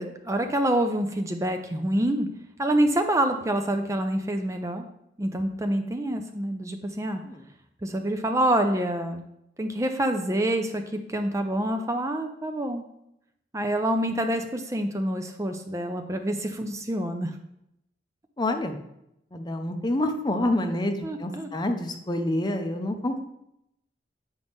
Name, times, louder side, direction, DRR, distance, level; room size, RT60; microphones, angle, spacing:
voice 1, 0.0-2.3 2.6-4.9 5.2-7.2 7.8-9.3 9.6-10.8 11.1-12.8 13.5-17.3 21.0-21.5, right 1 dB, 20° right, 6 dB, 0.4 m, -26 dB
voice 2, 18.4-18.8 19.3-23.2, left 1 dB, 25° left, 6 dB, 0.6 m, -27 dB
8.3 x 5.2 x 3.5 m, 0.81 s
head